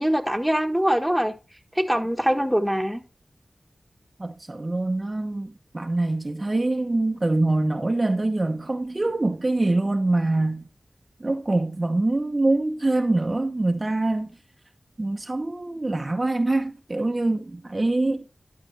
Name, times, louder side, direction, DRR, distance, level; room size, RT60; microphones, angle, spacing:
voice 1, 0.0-1.3 1.7-3.0, equal, 5° right, 1.4 m, -23 dB
voice 2, 4.2-10.7 11.2-14.3 15.0-18.3, right 2 dB, 40° right, 0.8 m, -24 dB
11.5 x 5.7 x 3.3 m
cardioid pair, 40°, 0 cm